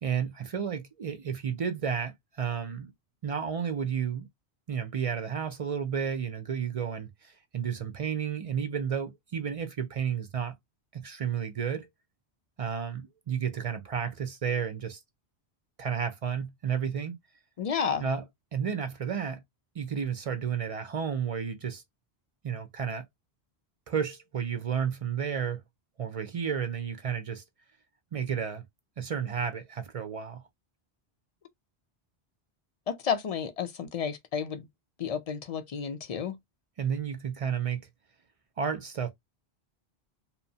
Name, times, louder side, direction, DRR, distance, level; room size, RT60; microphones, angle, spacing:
voice 1, 0.0-2.9 3.2-4.3 4.7-10.5 10.9-11.9 12.6-15.0 15.8-17.1 18.0-18.2 18.5-19.4 19.7-21.8 22.4-23.1 23.9-25.6 26.0-27.4 28.1-28.6 29.0-30.4 36.8-37.9 38.6-39.1, right 7 dB, 55° right, 0.4 m, -32 dB
voice 2, 17.6-18.0 32.9-34.7 35.0-36.4, left 7 dB, 55° left, 0.4 m, -31 dB
2.9 x 2.1 x 2.7 m
omnidirectional pair, 1.1 m